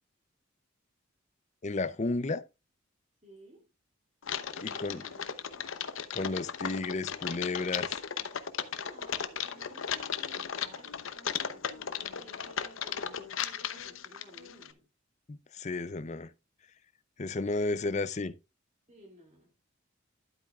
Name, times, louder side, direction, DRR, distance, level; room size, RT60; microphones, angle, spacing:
voice 1, 1.6-2.4 4.6-5.1 6.1-8.0 15.3-16.3 17.2-18.3, left 3 dB, 35° left, 0.5 m, -33 dB
voice 2, 3.2-3.7 4.5-5.7 8.7-14.9 18.9-19.5, right 1 dB, 35° right, 2.4 m, -56 dB
Typing, 4.2-14.7, left 8 dB, 80° left, 0.8 m, -36 dB
12.0 x 8.5 x 2.4 m
head